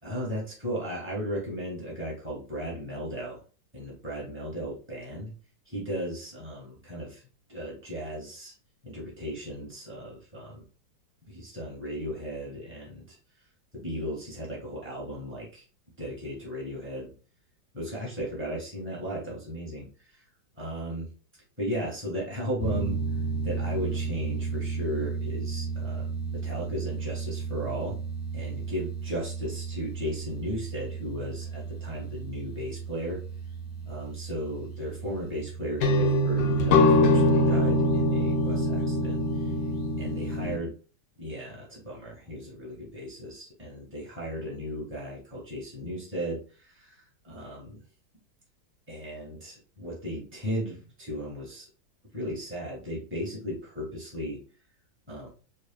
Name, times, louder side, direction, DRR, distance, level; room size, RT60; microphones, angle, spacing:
voice 1, 0.0-3.4 3.7-5.3 5.6-7.2 7.5-8.5 8.8-10.6 11.3-13.2 13.7-15.6 16.0-17.1 17.7-19.9 20.1-20.2 20.6-21.1 21.6-22.9 23.4-28.0 28.3-33.2 33.8-39.2 40.0-40.7 41.2-47.8 48.9-51.7 52.1-54.4 55.1-55.3, equal, 5° right, -5 dB, 1.6 m, -36 dB
sound 1, 22.6-40.6, equal, 65° left, 1.0 m, -28 dB
6.5 x 2.8 x 2.3 m, 0.38 s
omnidirectional pair, 1.8 m